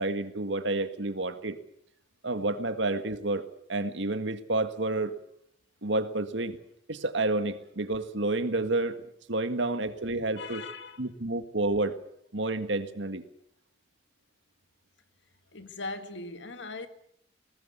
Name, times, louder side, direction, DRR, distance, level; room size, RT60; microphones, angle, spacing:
voice 1, 0.0-1.6 2.2-3.4 3.7-5.2 5.8-6.6 6.9-9.0 9.3-10.6 11.0-12.0 12.3-13.2, right 2 dB, 70° right, 1.8 m, -29 dB
voice 2, 10.4-11.0 15.5-16.9, left 3 dB, 70° left, 1.9 m, -39 dB
20.5 x 19.5 x 8.2 m
head